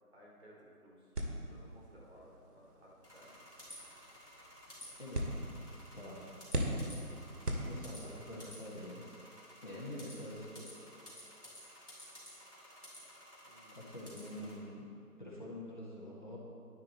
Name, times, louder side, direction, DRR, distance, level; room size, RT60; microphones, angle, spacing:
voice 1, 0.1-3.3 8.3-8.4 13.4-13.8, equal, 45° right, -4 dB, 3.1 m, -59 dB
sound 1, 1.1-8.3, right 1 dB, 80° right, 2.2 m, -41 dB
sound 2, 3.0-14.6, left 1 dB, ahead, 2.3 m, -54 dB
voice 2, 5.0-5.4 5.9-6.4 7.6-9.0 9.6-10.9 13.7-14.9 15.2-16.4, left 1 dB, 30° left, -5 dB, 1.4 m, -46 dB
11.0 x 10.5 x 4.3 m, 2.5 s
figure-of-eight pair, 175°, 46 cm